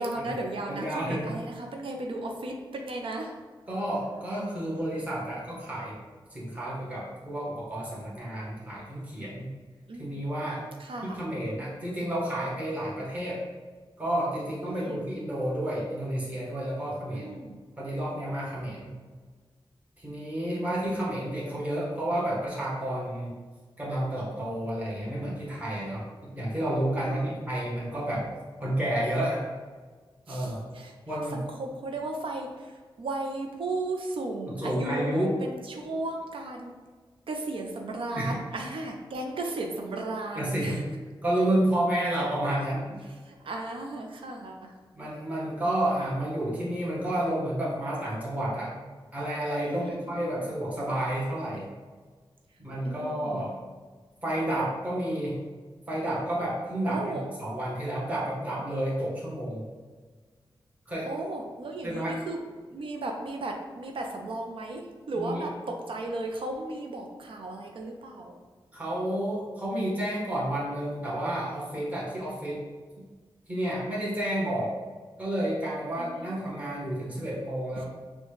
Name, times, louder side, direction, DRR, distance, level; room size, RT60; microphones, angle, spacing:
voice 1, 0.0-3.3 9.9-10.2 10.8-11.2 14.7-15.0 17.1-17.6 27.0-27.3 30.3-30.9 31.3-36.8 37.3-40.8 43.2-44.7 49.7-50.5 52.8-53.5 56.9-57.3 61.0-62.4 62.7-68.3 76.0-76.4, right 2 dB, 90° right, 2 dB, 0.5 m, -35 dB
voice 2, 0.7-1.4 3.7-6.0 6.3-9.5 10.0-10.6 11.1-13.4 14.0-17.3 17.8-18.9 20.0-23.4 23.8-28.3 28.6-29.4 30.3-30.6 31.1-31.4 34.5-35.4 38.1-38.4 40.3-40.9 41.2-43.0 44.9-48.7 49.1-51.6 52.6-53.6 54.2-55.4 55.9-59.7 60.9-61.1 61.8-62.2 65.1-65.4 68.7-72.6 73.5-74.8 75.2-77.9, right 1 dB, 15° right, -7 dB, 1.2 m, -30 dB
6.4 x 2.3 x 3.2 m, 1.5 s
wide cardioid pair, 160°, 9 cm